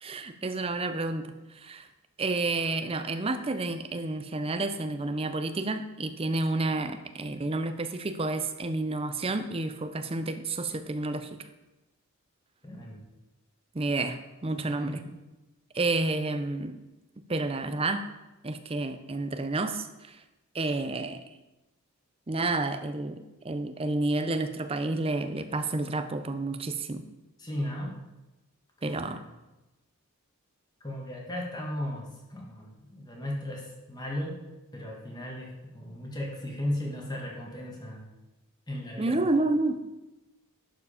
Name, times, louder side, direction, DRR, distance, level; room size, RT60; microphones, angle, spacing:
voice 1, 0.0-1.9 2.2-11.5 13.7-15.0 15.7-16.8 17.2-18.1 18.4-20.2 20.5-21.4 22.3-27.0 28.8-29.2 39.0-39.8, right 2 dB, 25° right, 9 dB, 0.5 m, -30 dB
voice 2, 12.6-13.0 14.5-15.1 27.4-27.9 28.8-29.1 30.8-34.4 34.7-38.1 38.7-39.2, left 1 dB, 20° left, -2 dB, 1.5 m, -36 dB
11.5 x 4.9 x 5.0 m, 1.0 s
head